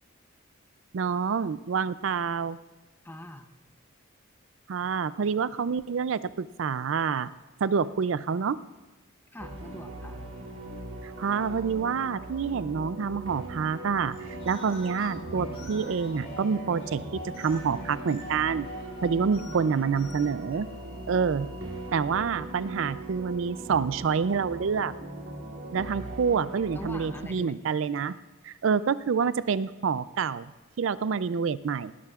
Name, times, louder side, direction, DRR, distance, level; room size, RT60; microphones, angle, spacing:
voice 1, 0.9-2.6 4.7-7.3 7.6-8.6 11.0-14.2 14.5-17.0 17.4-18.7 19.0-20.7 21.1-21.5 21.9-24.9 25.7-28.2 28.4-30.5 30.8-31.9, right 6 dB, 65° right, 16 dB, 0.4 m, -27 dB
voice 2, 3.0-3.5 9.3-10.2 19.4-19.8 26.7-27.6, left 1 dB, 10° left, 7 dB, 0.6 m, -42 dB
sound 1, 9.4-27.3, right 2 dB, 85° right, 2.7 m, -40 dB
sound 2, 14.0-22.3, equal, 55° left, 4.7 m, -44 dB
19.5 x 17.0 x 2.4 m, 1.2 s
head